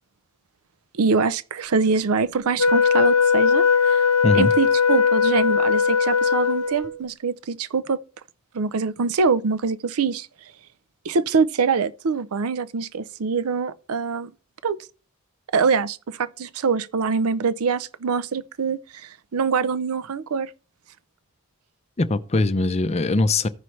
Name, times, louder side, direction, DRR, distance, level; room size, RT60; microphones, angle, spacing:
voice 1, 0.9-8.0 8.5-10.3 11.0-14.3 14.6-14.8 15.5-20.5, right 5 dB, 75° right, 0.5 m, -24 dB
Wind instrument woodwind instrument, 2.6-7.0, left 6 dB, 70° left, 0.9 m, -19 dB
voice 2, 22.0-23.5, left 2 dB, 30° left, 0.5 m, -21 dB
15.0 x 5.7 x 3.1 m
head